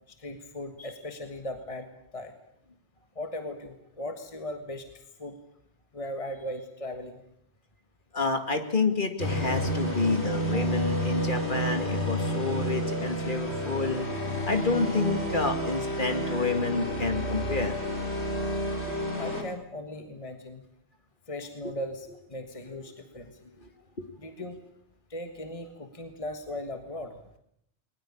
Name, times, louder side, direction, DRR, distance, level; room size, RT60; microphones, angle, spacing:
voice 1, 0.1-2.3 3.1-5.4 5.9-7.2 8.2-8.4 10.5-10.9 19.2-20.7 21.3-23.6 24.2-24.6 25.1-27.2, left 1 dB, 30° left, 7 dB, 1.6 m, -38 dB
voice 2, 8.1-14.1 14.4-17.7 21.6-21.7 23.6-23.7 24.0-24.1, left 3 dB, 45° left, 7 dB, 2.3 m, -29 dB
sound 1, 9.2-19.4, equal, 75° left, 4.3 m, -30 dB
20.5 x 20.0 x 8.6 m, 0.74 s
omnidirectional pair, 1.1 m